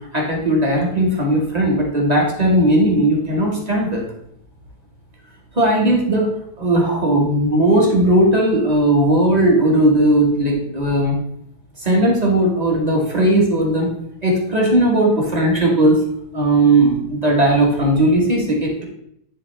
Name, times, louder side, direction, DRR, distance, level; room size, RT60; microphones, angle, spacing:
voice 1, 0.1-4.0 5.5-6.3 6.6-11.2 11.8-13.9 14.2-16.0 16.3-18.8, right 1 dB, 25° right, -1 dB, 1.2 m, -17 dB
10.5 x 3.5 x 3.3 m, 0.73 s
omnidirectional pair, 2.0 m